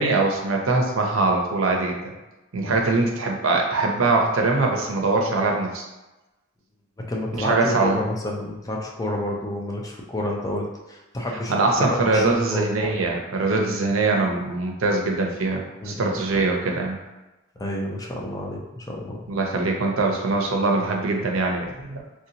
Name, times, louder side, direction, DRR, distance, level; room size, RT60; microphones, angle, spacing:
voice 1, 0.0-2.2 2.5-5.9 7.3-8.0 11.5-17.0 19.3-22.0, right 3 dB, 75° right, 1 dB, 0.6 m, -22 dB
voice 2, 7.0-11.5 11.8-13.0 15.8-16.1 17.6-19.2, left 1 dB, 15° left, -1 dB, 0.5 m, -30 dB
3.2 x 2.8 x 2.8 m, 1.1 s
head